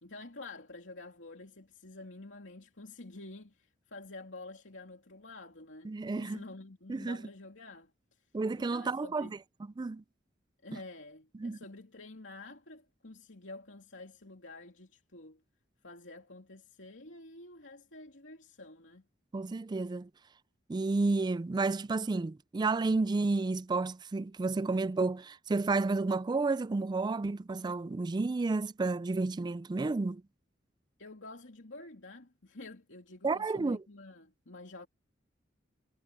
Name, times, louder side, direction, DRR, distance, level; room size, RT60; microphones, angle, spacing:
voice 1, 0.0-8.3 8.5-9.4 10.6-15.4 15.8-19.0 31.0-34.9, left 2 dB, 90° left, 2.8 m, -49 dB
voice 2, 5.8-6.4 6.9-7.2 8.3-9.4 9.8-10.0 11.4-11.6 19.3-20.1 20.7-30.2 33.2-33.8, right 3 dB, 25° right, 0.3 m, -31 dB
head